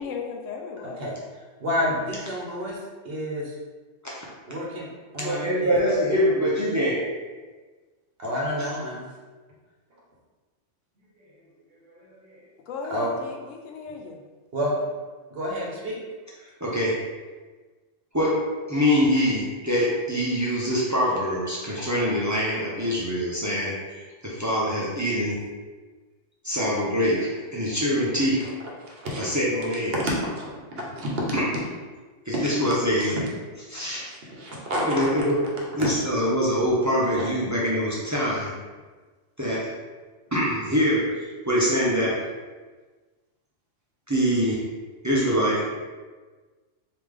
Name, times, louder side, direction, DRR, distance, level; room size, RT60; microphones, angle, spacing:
voice 1, 0.0-1.1 12.7-14.2, left 5 dB, 85° left, 2 dB, 1.0 m, -35 dB
voice 2, 0.8-3.5 4.5-5.8 8.2-9.0 11.2-11.4 11.7-12.5 12.9-13.1 14.5-14.8 15.3-16.0 28.8-29.2 29.9-30.0 30.4-30.5 30.7-31.2 34.0-34.1 34.3-35.1 35.8-35.9, equal, 55° right, -3 dB, 1.0 m, -30 dB
voice 3, 5.2-7.1 16.6-17.0 18.1-25.4 26.4-28.5 29.1-30.0 31.3-31.5 32.3-33.2 33.7-34.1 34.9-35.5 35.7-38.5 39.4-39.7 40.3-42.2 44.1-44.7 45.0-45.7, equal, 20° right, -7 dB, 0.5 m, -24 dB
3.3 x 2.8 x 3.5 m, 1.3 s
omnidirectional pair, 1.3 m